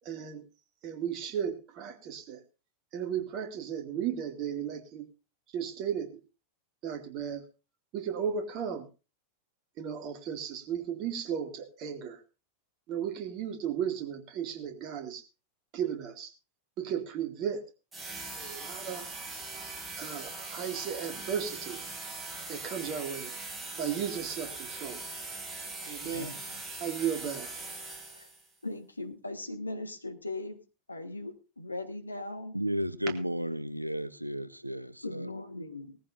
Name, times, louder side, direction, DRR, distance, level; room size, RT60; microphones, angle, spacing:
voice 1, 0.0-0.4 0.8-2.4 2.9-5.1 5.5-6.2 6.8-7.4 7.9-8.9 9.8-12.2 12.9-15.2 15.7-16.3 16.8-17.6 18.3-19.1 20.0-21.8 22.5-23.3 23.8-25.0 25.9-26.3 26.8-27.5, right 8 dB, 40° right, 2.2 m, -35 dB
sound 1, 17.9-28.5, right 3 dB, 15° right, 3.2 m, -41 dB
voice 2, 25.8-26.6 28.1-28.3 28.6-30.6 30.9-32.6 35.0-36.0, left 2 dB, 80° left, 1.4 m, -39 dB
voice 3, 32.5-35.3, equal, 90° right, 0.6 m, -33 dB
18.5 x 14.5 x 2.6 m
figure-of-eight pair, 90°, 0 cm